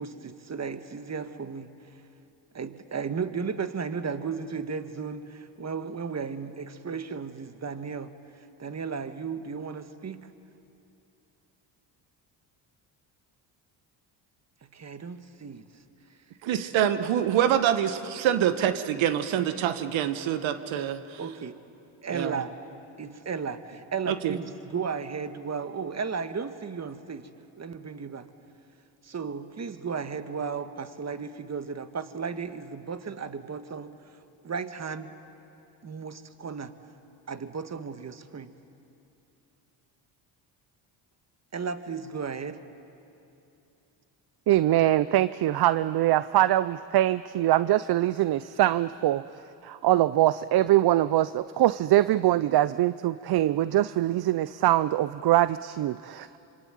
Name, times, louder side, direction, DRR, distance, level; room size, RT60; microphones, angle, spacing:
voice 1, 0.0-1.7 2.5-8.1 8.6-10.3 14.6-15.6 21.2-21.6 22.0-22.5 23.0-27.3 27.6-28.3 29.0-33.9 34.4-35.1 35.8-36.7 37.3-38.5 41.5-42.6, right 5 dB, 35° right, 10 dB, 1.7 m, -34 dB
voice 2, 16.4-21.2 22.1-22.4 24.1-24.3, right 10 dB, 70° right, 10 dB, 1.4 m, -26 dB
voice 3, 44.5-49.2 49.6-56.4, right 14 dB, 50° right, 16 dB, 0.6 m, -23 dB
26.5 x 24.0 x 9.0 m, 2.8 s
supercardioid pair, 65°, 48 cm